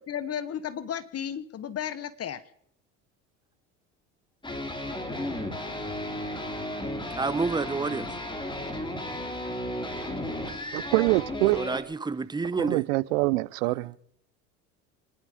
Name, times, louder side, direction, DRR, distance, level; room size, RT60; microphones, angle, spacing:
voice 1, 0.1-2.4, left 9 dB, 40° left, 1.1 m, -33 dB
sound 1, 4.4-11.8, left 1 dB, 10° left, 3.3 m, -34 dB
voice 2, 7.1-8.1 11.5-12.8 13.7-13.8, right 4 dB, 10° right, 0.9 m, -29 dB
voice 3, 10.7-11.6 12.6-13.9, right 21 dB, 80° right, 0.7 m, -24 dB
25.5 x 11.0 x 5.1 m
hypercardioid pair, 80°, 38 cm